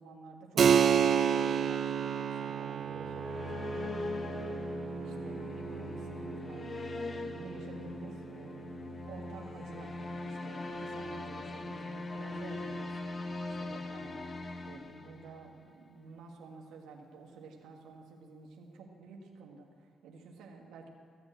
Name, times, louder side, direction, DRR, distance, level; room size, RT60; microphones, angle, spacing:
voice 1, 0.0-4.6 5.0-6.7 7.0-9.9 10.2-13.1 13.4-14.3 14.6-20.9, right 4 dB, 85° right, 0 dB, 1.8 m, -51 dB
Keyboard (musical), 0.6-10.8, right 8 dB, 55° right, 0.4 m, -32 dB
sound 1, 2.8-15.7, left 3 dB, 35° left, 1.0 m, -41 dB
16.0 x 7.7 x 8.8 m, 2.2 s
cardioid pair, 90°, 0 cm